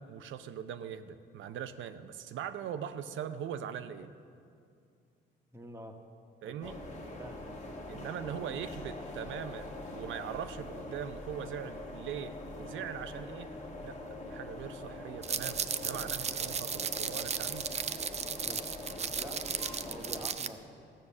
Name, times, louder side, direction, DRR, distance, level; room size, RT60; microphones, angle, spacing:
voice 1, 0.0-4.1 6.4-6.8 7.9-13.5 13.8-17.9, right 9 dB, 75° right, 11 dB, 0.6 m, -41 dB
voice 2, 5.5-6.0 6.4-6.8 7.2-7.8 18.4-18.6 19.2-19.5 19.8-20.6, right 1 dB, 15° right, 3 dB, 1.2 m, -47 dB
sound 1, 6.6-20.3, left 2 dB, 35° left, 1.6 m, -43 dB
sound 2, 15.2-20.5, right 7 dB, 35° right, 0.4 m, -35 dB
14.5 x 6.4 x 7.1 m, 2.4 s
cardioid pair, 90°, 20 cm